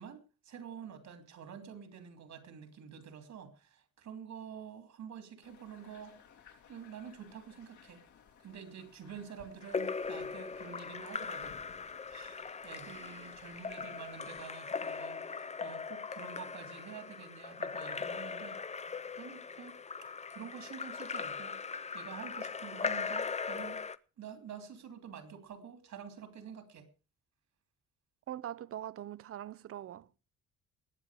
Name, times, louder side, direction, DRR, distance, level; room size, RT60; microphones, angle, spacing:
voice 1, 0.0-6.2 6.7-8.0 8.4-18.6 19.2-19.8 20.3-21.6 21.9-23.8 24.2-26.9, right 7 dB, 65° right, 2.9 m, -48 dB
sound 1, 5.4-14.4, left 7 dB, 75° left, 3.1 m, -59 dB
Splash splatter / Drip / Trickle dribble, 9.6-24.0, left 5 dB, 20° left, 0.6 m, -39 dB
voice 2, 28.3-30.1, right 11 dB, 50° right, 0.6 m, -42 dB
20.5 x 7.6 x 4.8 m
cardioid pair, 90°, 30 cm